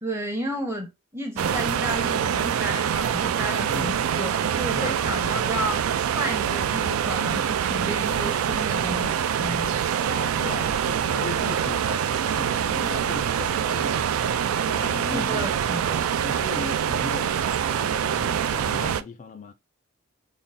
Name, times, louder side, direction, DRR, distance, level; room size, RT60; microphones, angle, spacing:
voice 1, 0.0-5.8 6.1-9.8 15.1-16.0, equal, 10° right, 0.7 m, -32 dB
sound 1, 1.4-19.0, right 8 dB, 85° right, 0.3 m, -25 dB
voice 2, 3.7-4.0 4.7-5.0 10.0-14.2 14.7-15.5 16.2-19.5, left 4 dB, 35° left, 0.3 m, -38 dB
3.6 x 2.0 x 4.0 m
head